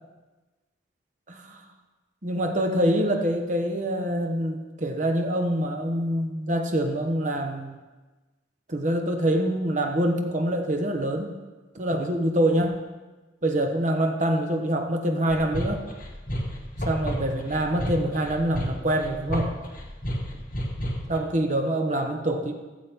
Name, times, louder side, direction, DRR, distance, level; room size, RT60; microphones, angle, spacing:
voice 1, 1.3-1.6 2.2-7.8 8.7-11.4 11.7-12.8 13.4-15.9 16.8-19.5 21.1-22.5, right 1 dB, 40° right, 3 dB, 1.0 m, -25 dB
sound 1, 15.3-21.2, equal, 45° left, 1.5 m, -31 dB
15.5 x 7.4 x 3.6 m, 1.2 s
head